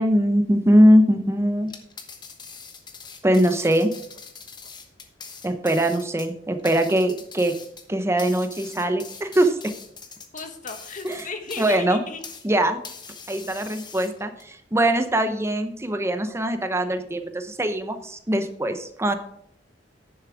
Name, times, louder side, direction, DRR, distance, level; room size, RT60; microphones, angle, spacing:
voice 1, 0.0-1.7 3.2-3.9 5.4-7.5 7.9-9.7 11.0-11.3 11.6-12.0 12.4-12.8 13.3-19.2, equal, 15° right, 8 dB, 0.8 m, -21 dB
sound 1, 1.6-12.5 12.8-14.4, left 5 dB, 25° left, 1.1 m, -42 dB
voice 2, 10.3-12.2, left 4 dB, 45° left, 7 dB, 1.4 m, -35 dB
10.5 x 7.2 x 4.8 m, 0.67 s
head